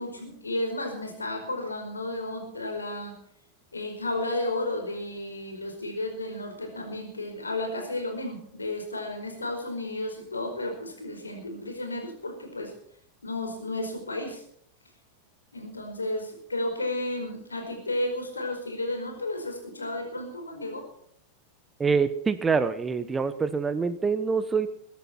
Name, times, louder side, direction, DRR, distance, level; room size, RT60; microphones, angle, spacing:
voice 1, 0.0-3.1 3.7-12.7 13.2-14.4 15.5-20.8, left 1 dB, 80° left, 3 dB, 4.9 m, -33 dB
voice 2, 21.8-24.7, right 5 dB, 15° right, 12 dB, 1.1 m, -25 dB
22.0 x 11.0 x 4.5 m, 0.66 s
figure-of-eight pair, 90°, 0 cm